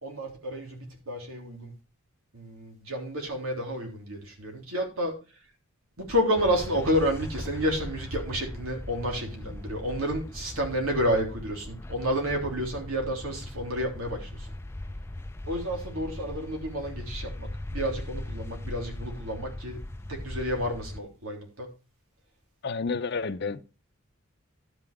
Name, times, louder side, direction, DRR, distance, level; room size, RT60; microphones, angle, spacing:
voice 1, 0.0-1.7 2.3-5.1 6.0-14.5 15.5-19.8 20.1-21.7, equal, 90° right, 3.3 m, -30 dB
sound 1, 6.4-21.0, left 1 dB, 10° left, 0.5 m, -39 dB
voice 2, 22.6-23.6, left 4 dB, 50° left, 0.6 m, -30 dB
12.0 x 5.8 x 4.9 m
head